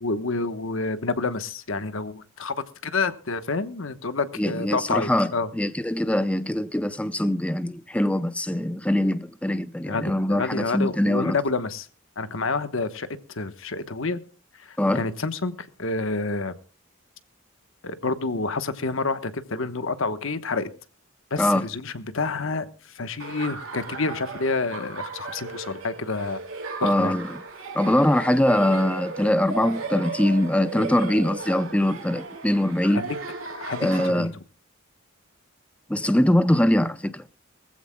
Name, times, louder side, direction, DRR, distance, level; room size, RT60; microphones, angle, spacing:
voice 1, 0.0-2.6 2.8-5.5 9.9-11.9 12.2-14.2 14.6-16.5 17.8-20.7 21.3-26.4 26.8-27.1 32.8-33.2 33.5-34.3, left 3 dB, 70° left, 1.1 m, -28 dB
voice 2, 4.4-11.4 14.8-15.1 21.4-21.7 26.8-27.3 27.7-33.0 33.8-34.3 35.9-37.2, left 1 dB, 5° left, 0.5 m, -22 dB
Laughter, 23.2-34.1, right 4 dB, 75° right, 4.2 m, -36 dB
21.0 x 15.0 x 2.2 m
head